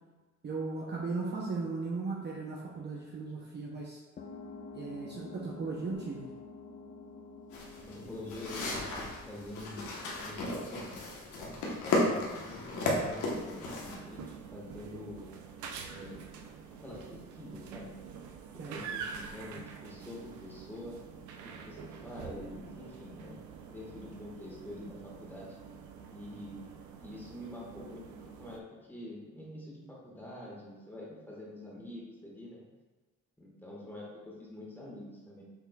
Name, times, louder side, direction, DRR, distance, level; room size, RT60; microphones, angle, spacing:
voice 1, 0.4-4.0 4.7-6.3 18.6-18.8, right 4 dB, 35° right, -3 dB, 0.7 m, -37 dB
sound 1, 4.2-12.3, left 3 dB, 30° left, 0.4 m, -49 dB
sound 2, 7.5-14.0, left 2 dB, 80° left, 1.1 m, -34 dB
voice 2, 7.9-9.9 10.2-10.9 11.4-15.3 15.8-16.2 16.8-17.9 18.5-21.0 21.6-25.5 26.1-26.7 27.0-28.0 28.4-32.6 33.4-35.4, left 1 dB, 5° left, -5 dB, 1.5 m, -46 dB
sound 3, 13.8-28.6, right 6 dB, 75° right, 0.5 m, -46 dB
5.8 x 3.7 x 2.3 m, 1.3 s
cardioid pair, 90°, 30 cm